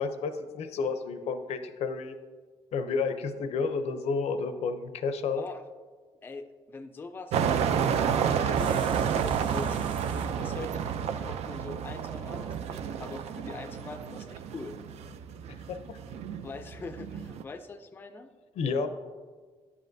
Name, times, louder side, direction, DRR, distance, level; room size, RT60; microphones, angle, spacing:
voice 1, 0.0-2.2 2.7-5.4 15.7-16.0 18.6-18.9, left 4 dB, 85° left, 9 dB, 0.6 m, -31 dB
voice 2, 6.2-9.8 10.4-14.8 16.4-18.3, left 3 dB, 20° left, 7 dB, 0.3 m, -43 dB
sound 1, 7.3-17.4, right 7 dB, 80° right, 0.4 m, -30 dB
sound 2, 8.5-10.4, right 4 dB, 45° right, 0.9 m, -47 dB
9.7 x 7.5 x 2.6 m, 1.5 s
cardioid pair, 155°, 11 cm